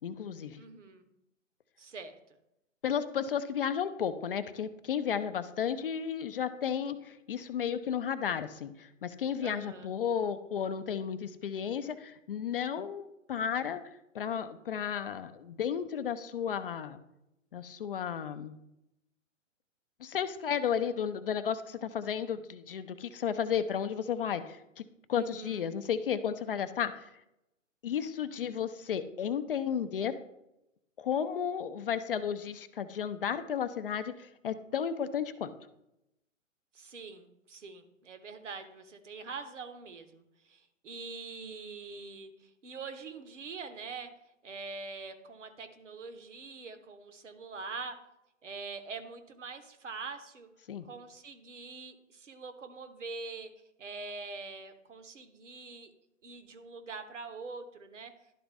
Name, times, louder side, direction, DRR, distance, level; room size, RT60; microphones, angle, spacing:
voice 1, 0.0-0.6 2.8-13.8 14.1-17.0 17.5-18.6 20.0-24.8 25.1-27.1 27.8-30.2 31.0-35.5 50.7-50.9, left 8 dB, 45° left, 11 dB, 0.5 m, -33 dB
voice 2, 0.6-1.0 1.8-2.1 9.4-9.9 25.1-25.7 36.7-44.1 44.4-48.0 48.4-50.5 50.8-53.5 53.8-55.9 56.2-58.1, right 4 dB, 70° right, 8 dB, 1.1 m, -44 dB
11.5 x 3.9 x 3.4 m, 0.86 s
figure-of-eight pair, 130°, 39 cm